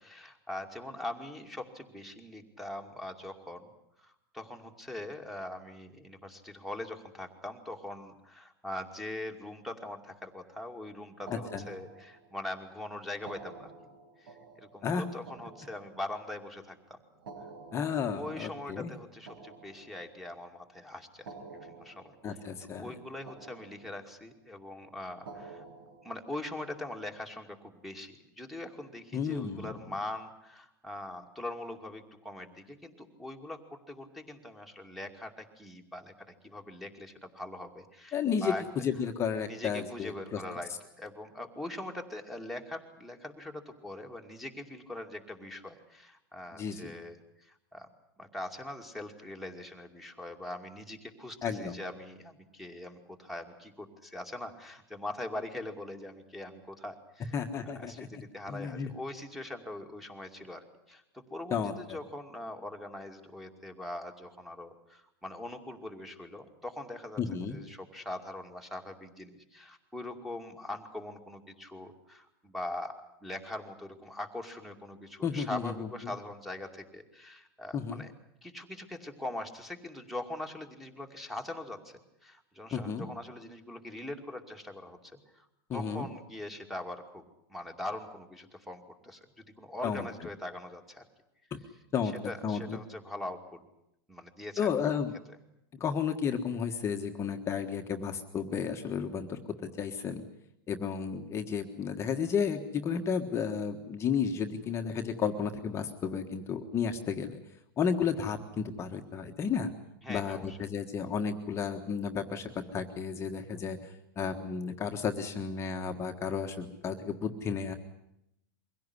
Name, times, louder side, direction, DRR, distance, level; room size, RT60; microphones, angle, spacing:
voice 1, 0.0-3.7 4.0-13.7 14.2-17.0 18.1-21.3 21.6-25.6 26.0-38.6 39.4-40.7 41.0-47.9 48.2-57.3 57.8-78.1 78.4-85.5 85.7-87.2 87.5-91.0 92.3-93.7 94.1-94.7 110.0-110.6, left 1 dB, ahead, 6 dB, 2.5 m, -42 dB
voice 2, 11.3-11.7 14.8-15.0 17.7-18.9 22.2-22.9 29.1-29.7 38.1-40.4 46.5-46.9 51.4-51.8 57.3-58.2 58.5-58.9 61.5-61.7 67.2-67.6 75.2-75.9 77.7-78.0 82.7-83.1 85.7-86.1 89.8-90.0 91.5-91.6 91.9-92.1 92.4-92.8 94.6-95.1 95.8-99.4 99.8-100.2 100.7-107.4 107.8-109.7 110.1-117.7, left 6 dB, 25° left, 4 dB, 1.5 m, -32 dB
sound 1, 11.3-12.5 13.1-16.5 17.1-20.4 21.1-23.0 23.3-24.3 25.1-27.0, right 4 dB, 85° right, 5.6 m, -51 dB
23.5 x 16.5 x 9.8 m, 0.80 s
supercardioid pair, 140°, 12 cm